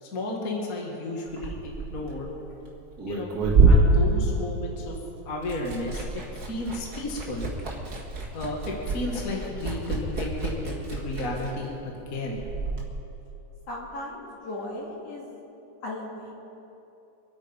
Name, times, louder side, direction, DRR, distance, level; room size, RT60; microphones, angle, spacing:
voice 1, 0.0-2.3 3.1-3.3 3.7-4.9 5.3-7.5 8.3-11.7 12.1-12.4, left 2 dB, 30° left, -1 dB, 1.9 m, -33 dB
Liquid, 1.3-5.0 5.2-12.8, right 3 dB, 35° right, 2.1 m, -26 dB
voice 2, 13.7-15.4 15.8-16.3, left 1 dB, 55° left, -3 dB, 3.1 m, -37 dB
26.0 x 9.0 x 5.3 m, 2.9 s
omnidirectional pair, 3.5 m